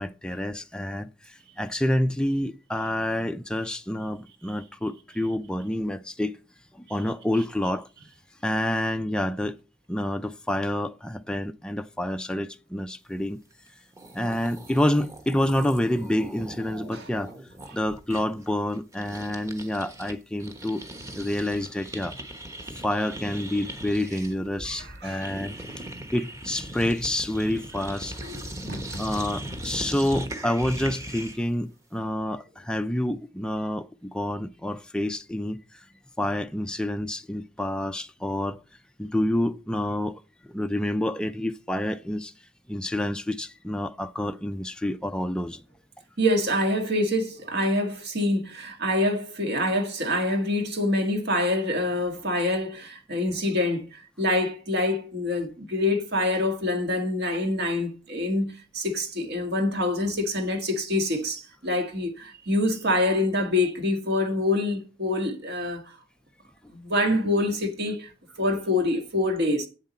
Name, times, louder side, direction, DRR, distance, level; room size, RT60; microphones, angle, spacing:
voice 1, 0.0-6.3 6.7-7.9 8.4-9.6 9.9-13.4 14.1-17.3 17.7-20.8 21.1-22.1 22.8-25.6 26.1-28.2 29.0-35.6 36.2-38.6 39.0-40.2 40.5-42.3 42.7-45.6 53.3-53.4, left 1 dB, 5° left, 0.4 m, -28 dB
sound 1, 13.7-13.8 13.9-20.1 20.4-31.5, right 1 dB, 15° right, 1.2 m, -39 dB
voice 2, 28.2-29.0 46.2-66.0 66.7-68.1 68.4-69.7, left 1 dB, 60° right, 1.9 m, -26 dB
8.9 x 7.5 x 4.2 m
head